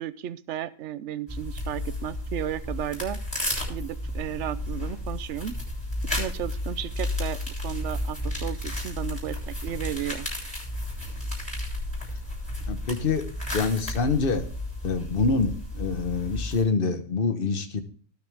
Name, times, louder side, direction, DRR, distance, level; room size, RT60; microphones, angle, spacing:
voice 1, 0.0-3.2 3.7-5.5 6.2-10.3, right 11 dB, 60° right, 15 dB, 1.0 m, -34 dB
sound 1, 1.3-16.6, left 1 dB, 5° left, 7.0 m, -32 dB
voice 2, 12.6-13.3 13.5-14.5 14.8-17.8, left 4 dB, 40° left, 8 dB, 1.3 m, -26 dB
19.5 x 7.1 x 3.5 m, 0.43 s
omnidirectional pair, 1.5 m